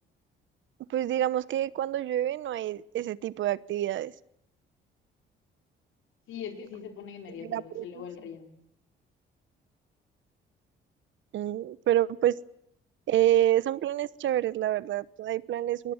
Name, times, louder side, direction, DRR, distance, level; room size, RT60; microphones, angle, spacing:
voice 1, 0.9-4.1 7.5-7.8 11.3-12.4 13.1-15.9, right 12 dB, 70° right, 19 dB, 1.0 m, -27 dB
voice 2, 6.3-8.6, left 7 dB, 80° left, 6 dB, 4.7 m, -41 dB
27.5 x 21.0 x 7.2 m, 0.79 s
cardioid pair, 90°, 20 cm